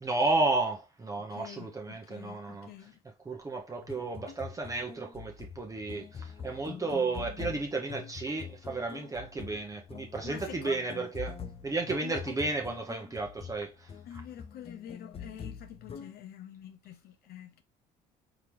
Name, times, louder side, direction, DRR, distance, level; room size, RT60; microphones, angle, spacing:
voice 1, 0.0-2.7 3.2-11.4 11.6-14.2, right 3 dB, 20° right, 1.0 m, -33 dB
voice 2, 1.3-3.0 10.2-10.8 12.0-12.2 14.1-17.6, left 10 dB, 65° left, 0.9 m, -46 dB
sound 1, 3.8-16.1, left 6 dB, 35° left, 0.6 m, -44 dB
4.9 x 3.4 x 3.0 m
cardioid pair, 110°, 17 cm